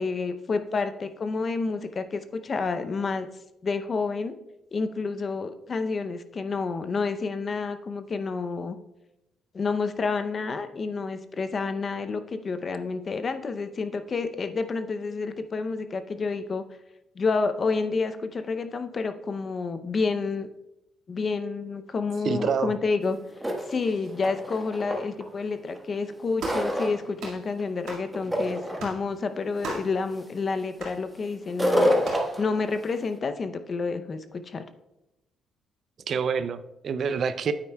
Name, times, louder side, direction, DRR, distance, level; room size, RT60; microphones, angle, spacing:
voice 1, 0.0-3.3 3.6-4.3 4.7-8.8 9.5-16.6 17.2-20.5 21.1-23.2 23.7-31.9 32.4-34.6, left 4 dB, 40° left, 10 dB, 0.6 m, -29 dB
voice 2, 22.2-22.7 36.1-37.5, right 6 dB, 55° right, 12 dB, 0.4 m, -27 dB
sound 1, 23.1-23.2 23.4-25.2 25.8-27.1 27.5-27.9 28.1-28.9 29.5-29.7 30.1-30.4 31.4-33.0, equal, 5° right, 1.3 m, -27 dB
sound 2, 26.4-26.7 27.2-27.4 27.9-28.1 28.8-29.0 29.6-29.9 30.8-31.0 32.0-32.3, right 3 dB, 80° right, 1.9 m, -36 dB
9.1 x 8.6 x 2.3 m, 0.91 s
cardioid pair, 90°, 0 cm